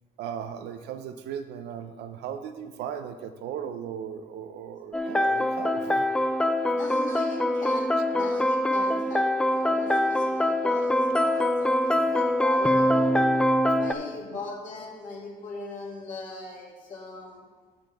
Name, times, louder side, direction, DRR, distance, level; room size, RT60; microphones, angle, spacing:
voice 1, 0.2-6.0, right 8 dB, 80° right, 9 dB, 0.7 m, -37 dB
sound 1, 4.9-13.9, left 1 dB, 5° left, 0.5 m, -24 dB
voice 2, 6.7-13.2 13.7-17.4, left 3 dB, 50° left, -3 dB, 2.6 m, -40 dB
13.5 x 5.8 x 3.6 m, 1.4 s
cardioid pair, 110°, 17 cm